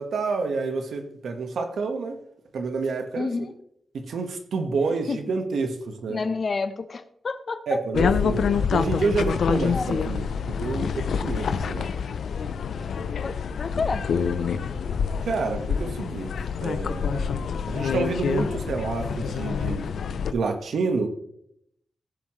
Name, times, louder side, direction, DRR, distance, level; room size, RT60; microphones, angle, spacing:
voice 1, 0.0-2.2 2.5-3.3 3.9-6.2 7.7-10.3 10.6-11.9 15.2-16.3 16.6-17.3 17.7-19.9 20.3-21.1, right 4 dB, 90° right, 6 dB, 1.4 m, -28 dB
voice 2, 3.1-3.6 5.1-5.3 6.1-7.8 8.7-9.1 9.6-9.9 12.7-12.9 13.2-14.1, left 4 dB, 50° left, 11 dB, 0.9 m, -30 dB
sound 1, 7.9-20.3, left 6 dB, 85° left, 0.6 m, -27 dB
16.5 x 7.4 x 3.2 m, 0.73 s
wide cardioid pair, 105°, 0 cm